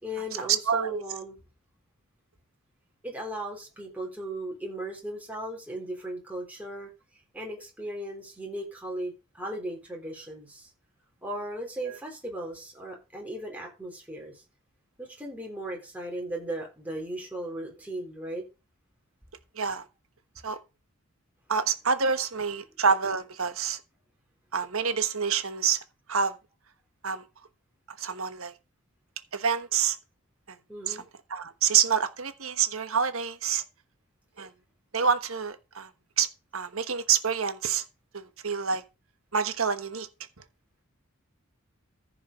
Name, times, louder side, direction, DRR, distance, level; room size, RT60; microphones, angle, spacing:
voice 1, 0.0-1.4 3.0-6.9 7.3-10.7 11.2-14.4 15.0-18.4 30.7-31.1, right 1 dB, 5° right, 3.8 m, -37 dB
voice 2, 0.7-1.0 19.5-19.8 20.4-20.6 21.5-23.8 24.5-25.8 26.1-26.3 27.0-27.2 28.0-28.5 29.3-30.0 30.5-30.6 30.9-31.0 31.3-33.6 34.4-34.5 34.9-35.9 36.2-36.3 36.5-37.8 38.1-38.8 39.3-40.1, right 6 dB, 75° right, 1.3 m, -27 dB
14.5 x 5.0 x 5.1 m
head